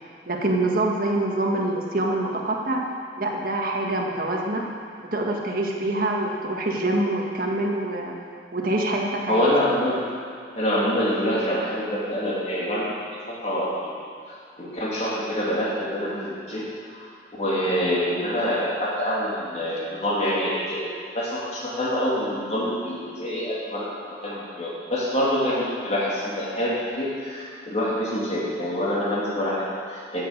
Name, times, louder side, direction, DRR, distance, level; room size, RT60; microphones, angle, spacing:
voice 1, 0.3-2.8 3.2-4.7 5.0-8.2 8.5-9.5, right 2 dB, 50° right, 0 dB, 1.8 m, -25 dB
voice 2, 9.3-10.0 10.5-12.9 13.3-13.9 14.6-16.7 17.4-20.9 21.1-30.2, equal, 40° left, -6 dB, 2.9 m, -26 dB
15.5 x 7.6 x 7.5 m, 2.3 s
head